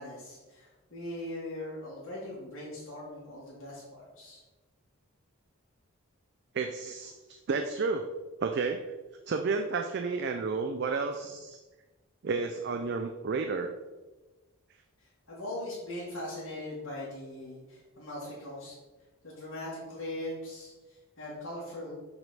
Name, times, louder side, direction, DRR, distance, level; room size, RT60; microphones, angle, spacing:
voice 1, 0.0-4.4 15.3-18.7 19.2-21.9, left 1 dB, 60° left, -8 dB, 1.7 m, -40 dB
voice 2, 6.5-8.1 8.4-8.9 9.3-11.6 12.2-13.7, right 4 dB, 50° right, 5 dB, 0.3 m, -31 dB
6.7 x 4.3 x 4.0 m, 1.2 s
head